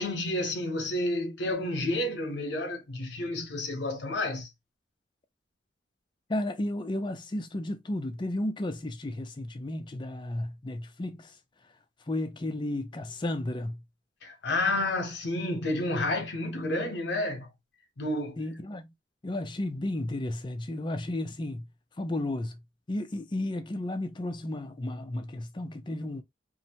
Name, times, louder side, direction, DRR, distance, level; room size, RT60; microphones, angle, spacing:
voice 1, 0.0-4.5 14.2-17.5 18.0-18.4, left 1 dB, 65° left, 0.9 m, -30 dB
voice 2, 6.3-11.4 12.1-13.8 18.4-18.9 19.2-21.7 22.0-22.6 22.9-26.2, left 1 dB, 25° left, 0.4 m, -33 dB
2.7 x 2.1 x 2.8 m
head